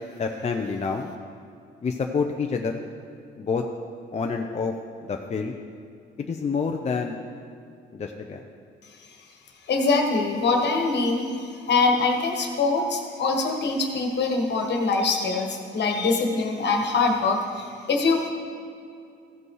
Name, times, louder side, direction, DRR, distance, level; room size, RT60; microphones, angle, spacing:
voice 1, 0.2-1.1 1.8-2.8 3.4-3.6 4.1-4.7 5.0-5.5 6.2-7.2 7.9-8.4, left 5 dB, 35° left, 2 dB, 0.6 m, -28 dB
voice 2, 9.7-18.3, left 3 dB, 60° left, 3 dB, 1.5 m, -23 dB
15.0 x 5.3 x 4.8 m, 2.4 s
cardioid pair, 90°, 20 cm